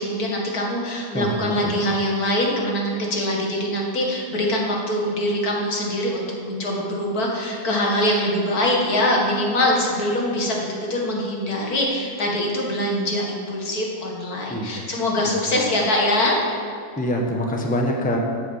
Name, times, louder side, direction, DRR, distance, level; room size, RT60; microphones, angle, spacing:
voice 1, 0.0-16.5, left 1 dB, 70° left, -2 dB, 2.4 m, -23 dB
voice 2, 1.1-2.0 14.5-14.9 15.2-15.6 17.0-18.2, left 1 dB, 5° left, 0 dB, 1.1 m, -26 dB
13.0 x 8.4 x 5.7 m, 2.4 s
omnidirectional pair, 1.6 m